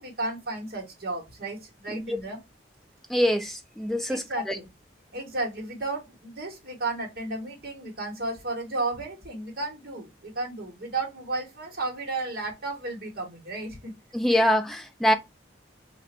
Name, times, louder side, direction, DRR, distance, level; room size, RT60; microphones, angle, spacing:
voice 1, 0.0-2.4 4.1-4.7 5.1-13.9 14.3-14.5, right 2 dB, 55° right, 1.3 m, -33 dB
voice 2, 3.1-4.6 14.1-15.1, equal, ahead, 0.4 m, -24 dB
2.6 x 2.5 x 4.2 m
head